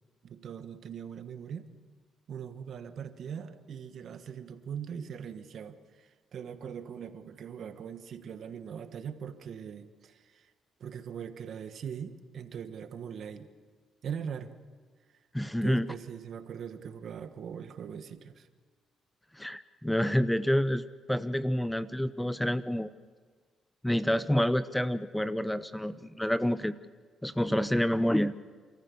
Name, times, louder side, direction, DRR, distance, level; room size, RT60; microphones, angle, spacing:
voice 1, 0.2-1.7 2.3-10.5 10.8-13.5 14.0-14.5 15.6-18.5, right 7 dB, 65° right, 9 dB, 1.3 m, -41 dB
voice 2, 15.3-15.9 19.4-20.8 21.1-22.9 23.8-26.7 27.2-28.3, equal, 5° left, 14 dB, 0.6 m, -28 dB
28.0 x 14.5 x 7.0 m, 1.5 s
cardioid pair, 90°, 0 cm